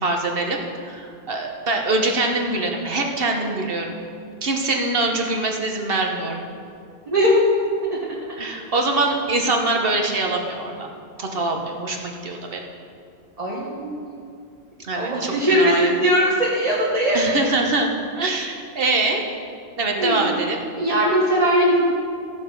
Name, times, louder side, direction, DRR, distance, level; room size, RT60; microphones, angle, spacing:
voice 1, 0.0-4.0 4.4-6.5 8.4-10.9 11.2-12.6 14.8-16.0 17.1-19.2 19.8-20.6, right 2 dB, 55° right, 2 dB, 1.4 m, -24 dB
voice 2, 7.1-7.4 7.9-8.0 13.4-14.1 14.9-17.4 19.9-20.2 20.8-21.8, equal, 35° right, -6 dB, 1.6 m, -20 dB
14.0 x 6.9 x 5.5 m, 2.4 s
omnidirectional pair, 1.2 m